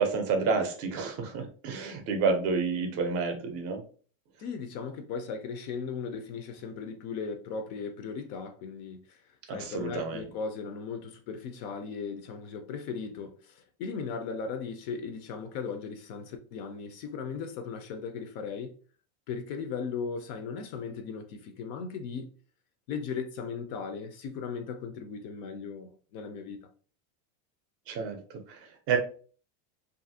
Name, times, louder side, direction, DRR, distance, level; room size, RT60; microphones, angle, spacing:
voice 1, 0.0-3.8 9.5-10.2 27.9-29.0, right 5 dB, 35° right, 0.5 m, -29 dB
voice 2, 4.4-9.2 9.5-18.7 19.3-22.3 22.9-26.7, left 5 dB, 50° left, 0.4 m, -37 dB
2.6 x 2.5 x 2.7 m
cardioid pair, 165°, 42 cm